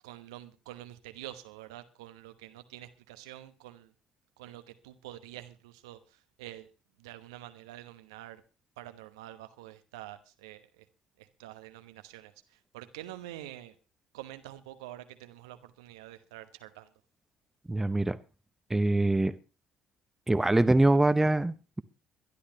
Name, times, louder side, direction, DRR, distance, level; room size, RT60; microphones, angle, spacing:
voice 1, 0.0-3.9 4.4-6.7 7.0-8.4 8.8-10.9 11.2-13.8 14.1-16.9, right 14 dB, 75° right, 1.0 m, -47 dB
voice 2, 17.7-18.2 18.7-19.4 20.3-21.8, right 2 dB, 10° right, 0.9 m, -24 dB
22.5 x 11.5 x 2.9 m
figure-of-eight pair, 50°, 3 cm